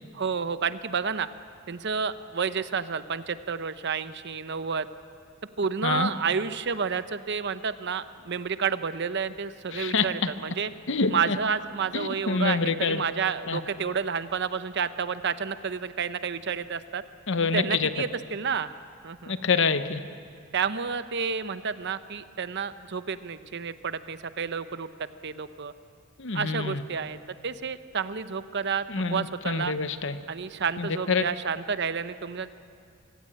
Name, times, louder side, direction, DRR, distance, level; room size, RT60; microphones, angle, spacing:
voice 1, 0.1-1.3 1.7-4.9 5.6-10.7 11.1-17.0 17.5-18.7 19.0-19.3 20.5-25.7 26.3-28.8 29.1-29.7 30.3-32.6, right 6 dB, 55° right, 12 dB, 0.8 m, -30 dB
voice 2, 9.7-10.3 10.9-11.4 11.9-13.0 13.5-13.6 17.3-17.9 19.3-20.0 26.2-26.8 28.9-30.2 30.8-31.2, left 4 dB, 60° left, 11 dB, 0.9 m, -26 dB
24.0 x 15.5 x 8.7 m, 2.3 s
head